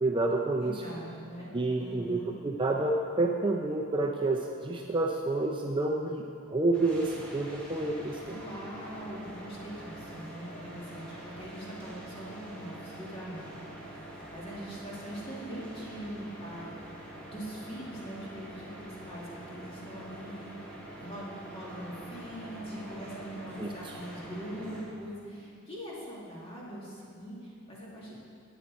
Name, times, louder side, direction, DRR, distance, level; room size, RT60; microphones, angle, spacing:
voice 1, 0.0-0.8 1.5-6.2 6.5-8.4 23.6-24.0, right 2 dB, 20° right, 1 dB, 0.5 m, -29 dB
voice 2, 0.6-2.3 8.3-16.8 17.2-28.1, equal, 25° left, -6 dB, 2.4 m, -42 dB
sound 1, 6.7-24.8, right 1 dB, 5° left, 2.0 m, -45 dB
14.0 x 8.9 x 4.1 m, 2.5 s
head